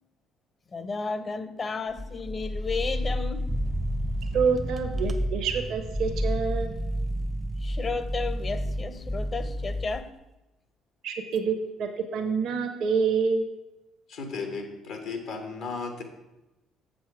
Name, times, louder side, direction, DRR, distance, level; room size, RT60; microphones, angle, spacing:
voice 1, 0.7-3.5 6.6-6.7 7.6-10.1, left 4 dB, 35° left, 0.7 m, -33 dB
sound 1, 1.9-4.6 4.9-5.4 5.8-10.1, left 1 dB, ahead, 0.4 m, -31 dB
sound 2, 3.5-9.0, right 4 dB, 40° right, 0.6 m, -36 dB
voice 2, 4.3-6.7 11.0-13.4, right 5 dB, 65° right, 0.8 m, -27 dB
voice 3, 14.1-16.0, left 4 dB, 80° left, 1.1 m, -35 dB
7.1 x 6.2 x 4.8 m
hypercardioid pair, 65°, 0 cm